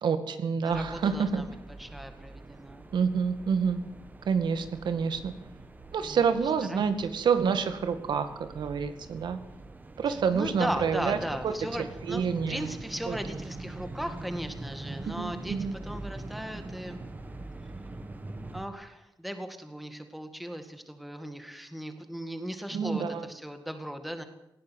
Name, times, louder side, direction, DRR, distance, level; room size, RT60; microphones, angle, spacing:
voice 1, 0.0-1.4 2.9-3.8 4.3-5.3 5.9-8.3 8.5-9.4 10.0-11.2 11.4-11.5 11.8-12.7 13.1-13.2 15.1-15.8 22.7-23.3, right 6 dB, 80° right, 9 dB, 2.0 m, -28 dB
voice 2, 0.6-2.9 6.0-6.2 6.7-7.0 10.1-17.0 18.5-24.2, equal, ahead, 7 dB, 2.0 m, -37 dB
sound 1, 0.7-18.7, right 2 dB, 25° right, 1.7 m, -43 dB
18.5 x 16.5 x 9.4 m, 0.86 s
wide cardioid pair, 175°, 8 cm